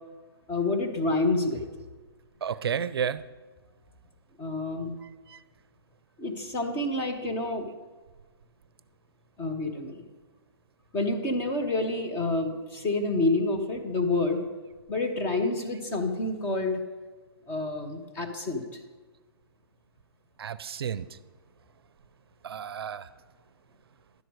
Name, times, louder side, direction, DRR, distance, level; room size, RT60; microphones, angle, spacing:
voice 1, 0.5-1.6 4.4-5.0 6.2-7.7 9.4-10.1 10.9-14.4 14.9-16.8 17.5-18.8, left 2 dB, 15° left, 4 dB, 1.0 m, -28 dB
voice 2, 2.4-3.2 20.4-21.1 22.4-23.0, right 7 dB, 70° right, 16 dB, 0.5 m, -31 dB
10.5 x 7.7 x 4.7 m, 1.3 s
hypercardioid pair, 150°, 13 cm